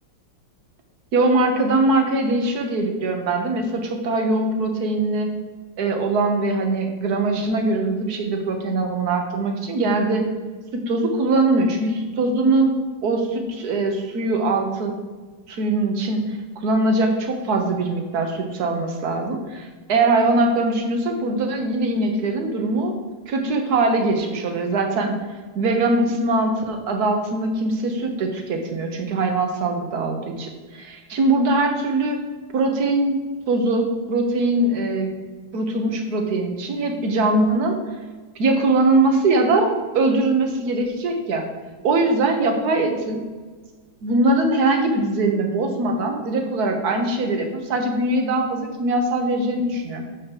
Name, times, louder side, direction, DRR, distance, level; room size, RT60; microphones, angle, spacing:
voice 1, 1.1-5.3 5.8-10.3 10.7-12.8 13.0-14.9 15.5-16.4 16.6-22.9 23.3-25.2 25.5-32.2 32.5-33.2 33.5-35.1 35.5-37.8 38.4-41.4 41.8-43.2 44.0-50.0, right 2 dB, 55° right, 3 dB, 1.4 m, -21 dB
10.5 x 7.2 x 2.9 m, 1.4 s
omnidirectional pair, 2.2 m